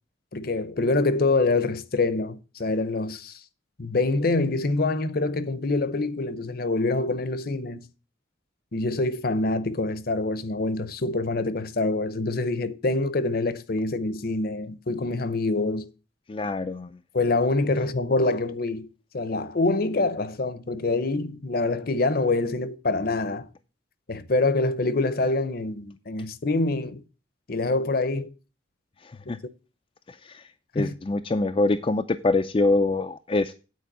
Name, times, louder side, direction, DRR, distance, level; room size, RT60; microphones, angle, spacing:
voice 1, 0.3-3.4 3.8-7.8 8.7-15.9 17.1-18.9 19.1-23.5 24.1-27.0 27.5-28.3 29.3-29.4 30.8-30.9, left 2 dB, 50° left, 0.7 m, -25 dB
voice 2, 16.3-16.9 29.0-29.4 30.1-30.4 30.7-33.5, left 2 dB, 30° left, 0.4 m, -25 dB
9.3 x 4.5 x 7.3 m
head